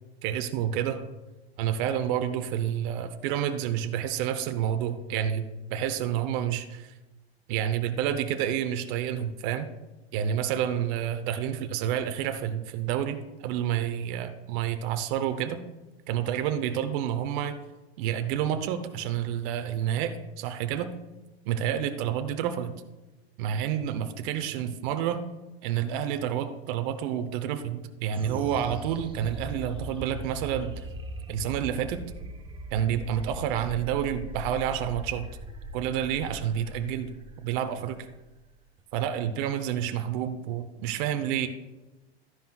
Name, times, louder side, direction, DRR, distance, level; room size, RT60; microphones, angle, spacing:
voice 1, 0.2-1.0 1.6-5.5 5.7-6.9 7.5-9.7 10.1-15.6 16.1-17.6 18.0-20.9 21.4-22.7 23.4-25.2 25.6-30.7 31.3-32.0 32.7-35.3 35.7-37.1 37.4-38.0 38.9-41.5, right 9 dB, 55° right, 8 dB, 0.9 m, -29 dB
sound 1, 28.1-38.8, right 1 dB, 15° right, 1.0 m, -40 dB
13.0 x 10.5 x 2.4 m, 1.1 s
hypercardioid pair, 95°, 32 cm